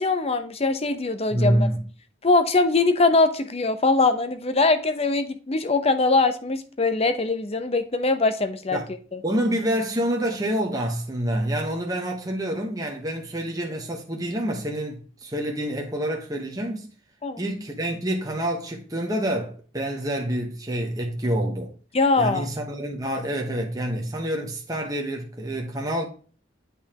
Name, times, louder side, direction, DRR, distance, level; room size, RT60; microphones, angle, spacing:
voice 1, 0.0-1.7 2.2-8.8 9.1-9.2 17.2-17.4 21.9-22.5, left 3 dB, 30° left, 0.8 m, -22 dB
voice 2, 1.3-1.8 8.7-8.9 9.2-16.9 17.4-21.7 22.2-26.1, right 1 dB, 20° right, 1.1 m, -27 dB
8.6 x 5.5 x 2.9 m
head